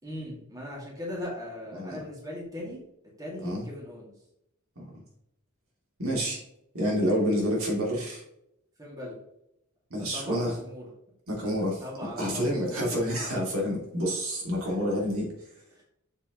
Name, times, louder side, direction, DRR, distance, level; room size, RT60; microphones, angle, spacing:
voice 1, 0.0-2.8 3.2-4.1 7.0-7.5 8.8-9.2 10.1-10.9 11.4-13.0 14.6-14.7 15.8-15.9, left 1 dB, 15° right, -4 dB, 2.4 m, -39 dB
voice 2, 6.0-6.4 6.7-8.2 9.9-10.6 11.3-15.3, equal, 70° right, -3 dB, 2.8 m, -28 dB
7.1 x 6.7 x 3.1 m, 0.80 s
head